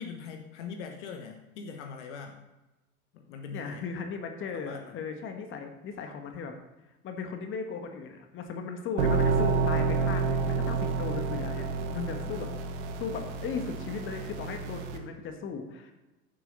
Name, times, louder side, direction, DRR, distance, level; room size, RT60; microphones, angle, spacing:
voice 1, 0.0-2.4 3.1-3.9 4.5-5.0 11.9-12.5, left 6 dB, 50° left, 5 dB, 1.3 m, -42 dB
voice 2, 3.5-6.5 7.0-12.5 13.0-15.9, left 5 dB, 25° left, 5 dB, 1.4 m, -37 dB
sound 1, 9.0-15.0, right 4 dB, 50° right, 1.4 m, -29 dB
15.0 x 7.6 x 4.0 m, 1.0 s
figure-of-eight pair, 85°, 44 cm